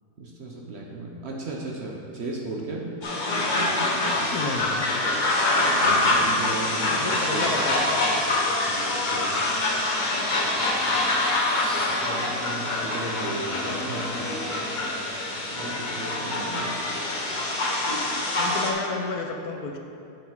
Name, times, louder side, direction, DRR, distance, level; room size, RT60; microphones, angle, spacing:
voice 1, 0.2-2.9 5.6-7.0 7.3-7.6 8.7-9.5 12.0-14.8 15.5-16.8, right 2 dB, 55° right, -1 dB, 0.8 m, -36 dB
sound 1, 3.0-18.7, left 2 dB, 35° left, 0.9 m, -25 dB
voice 2, 4.3-4.9 6.9-8.0 10.8-10.9 16.2-16.5 18.3-19.8, left 4 dB, 75° left, 3 dB, 1.2 m, -32 dB
7.0 x 6.9 x 4.7 m, 2.6 s
omnidirectional pair, 1.7 m